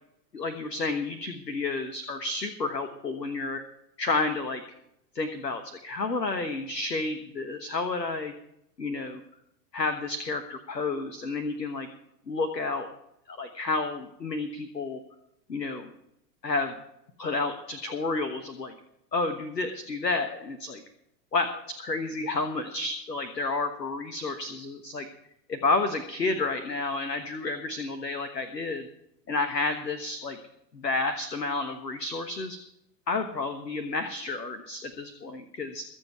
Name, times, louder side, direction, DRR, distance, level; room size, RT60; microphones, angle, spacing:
voice 1, 0.3-3.6 4.0-4.6 5.1-8.3 8.8-9.2 9.7-11.9 12.3-12.9 13.3-15.0 15.5-15.9 16.4-16.7 17.2-18.7 19.1-20.8 21.3-25.1 25.5-28.9 29.3-30.4 30.7-32.6 33.1-35.8, left 3 dB, 80° left, 9 dB, 1.4 m, -30 dB
23.0 x 7.6 x 4.7 m, 0.79 s
figure-of-eight pair, 95°, 49 cm